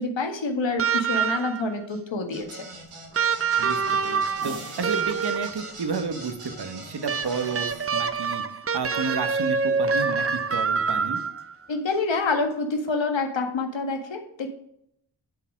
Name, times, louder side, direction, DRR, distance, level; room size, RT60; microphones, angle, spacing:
voice 1, 0.0-2.6 11.7-14.5, left 3 dB, 65° left, 4 dB, 1.7 m, -27 dB
sound 1, 0.8-1.7 3.1-5.7 7.1-11.5 12.9-13.0, right 5 dB, 30° right, 0.7 m, -26 dB
sound 2, 2.3-7.8, right 2 dB, 90° right, 2.1 m, -42 dB
voice 2, 3.6-8.4 8.7-11.2, right 5 dB, 50° right, 7 dB, 1.3 m, -31 dB
sound 3, 4.4-6.9, right 2 dB, 70° right, 2.6 m, -45 dB
10.5 x 4.0 x 5.1 m, 0.73 s
cardioid pair, 45°, 49 cm